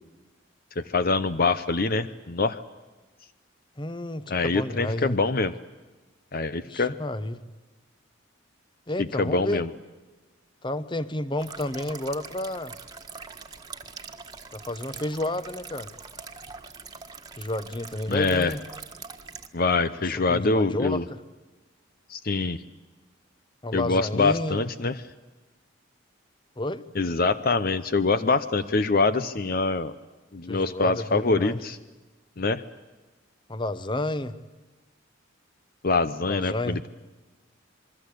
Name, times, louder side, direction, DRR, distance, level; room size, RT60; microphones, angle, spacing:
voice 1, 0.8-2.6 4.3-5.5 6.3-6.9 9.0-9.7 18.1-18.5 19.5-21.0 22.1-22.6 23.7-25.0 26.9-29.9 30.3-31.8 32.4-32.6 35.8-36.9, left 3 dB, 50° left, 13 dB, 0.8 m, -24 dB
voice 2, 3.8-5.2 6.7-7.4 8.9-9.6 10.6-12.7 14.5-15.9 17.4-18.6 20.3-21.2 23.6-24.6 26.6-26.8 30.5-31.6 33.5-34.3 36.3-36.8, left 1 dB, 25° left, 14 dB, 1.0 m, -30 dB
sound 1, 11.4-19.5, right 5 dB, 20° right, 1.6 m, -43 dB
28.0 x 22.5 x 8.5 m, 1.2 s
head